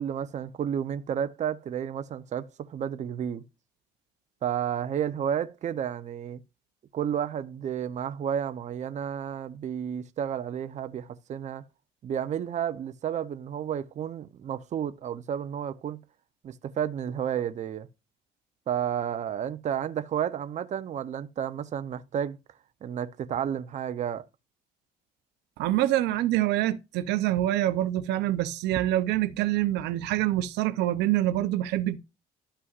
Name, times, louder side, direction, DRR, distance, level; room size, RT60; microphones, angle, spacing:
voice 1, 0.0-3.4 4.4-6.4 6.9-11.6 12.0-16.0 16.4-17.9 18.7-22.4 22.8-24.3, right 9 dB, 45° right, 0.7 m, -31 dB
voice 2, 25.6-32.0, right 14 dB, 85° right, 0.7 m, -26 dB
12.5 x 5.6 x 2.5 m
cardioid pair, 110°, 17 cm